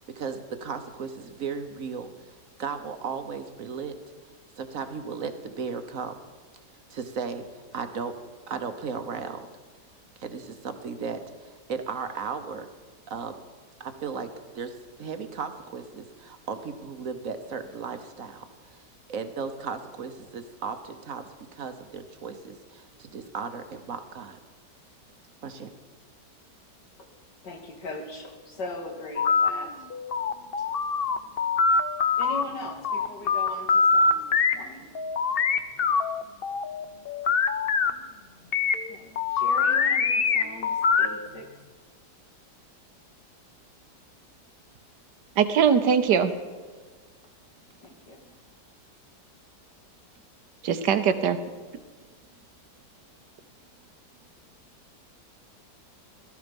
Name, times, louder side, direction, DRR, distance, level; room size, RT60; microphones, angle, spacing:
voice 1, 0.1-4.0 4.6-6.1 6.9-8.1 8.5-9.5 10.2-12.7 13.1-13.3 13.8-14.3 14.5-18.8 19.1-24.4 25.4-25.7, right 5 dB, 55° right, 8 dB, 1.2 m, -35 dB
voice 2, 27.4-29.9 32.2-34.9 38.9-41.5 47.8-48.2, left 2 dB, 80° left, 3 dB, 2.5 m, -40 dB
sound 1, 29.2-29.5 29.9-32.4 32.8-34.5 34.9-37.9 38.5-41.3, left 5 dB, 60° left, 0.6 m, -24 dB
voice 3, 45.4-46.3 50.6-51.4, right 7 dB, 75° right, 10 dB, 1.5 m, -21 dB
16.5 x 13.0 x 5.2 m, 1.5 s
omnidirectional pair, 1.8 m